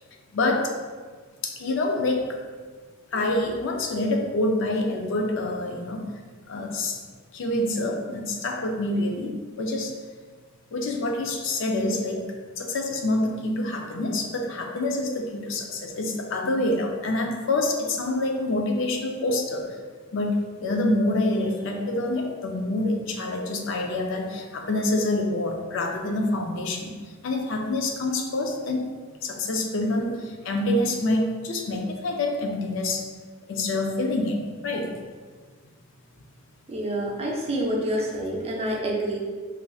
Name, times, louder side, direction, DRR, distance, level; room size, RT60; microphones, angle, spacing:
voice 1, 0.3-0.7 1.4-2.4 3.1-6.0 6.5-7.0 7.3-10.0 10.7-12.3 12.6-19.7 20.1-28.9 29.2-33.0 33.5-35.0, left 2 dB, 65° left, 2 dB, 0.4 m, -26 dB
voice 2, 36.7-39.2, right 1 dB, 30° right, -2 dB, 0.5 m, -28 dB
4.2 x 2.5 x 2.3 m, 1.5 s
head